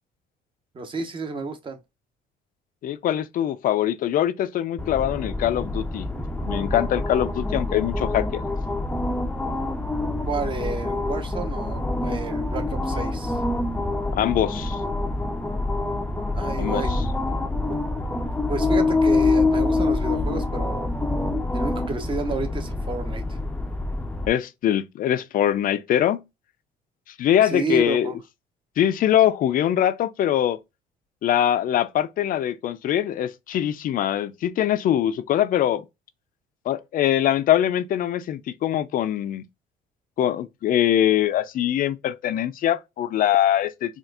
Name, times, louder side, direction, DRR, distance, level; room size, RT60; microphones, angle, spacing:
voice 1, 0.7-1.8 10.3-13.4 16.3-16.9 17.7-17.8 18.5-20.9 21.5-23.4 27.4-28.2, right 3 dB, 30° right, 1.0 m, -30 dB
voice 2, 2.8-6.1 6.5-8.4 14.1-14.8 16.6-17.1 24.3-26.2 27.1-28.1 28.8-30.6 31.2-35.8 36.7-39.4 40.2-44.0, left 11 dB, 55° left, 0.5 m, -23 dB
sound 1, 4.8-24.3, left 2 dB, 10° left, 0.6 m, -26 dB
4.3 x 2.5 x 2.3 m
cardioid pair, 110°, 17 cm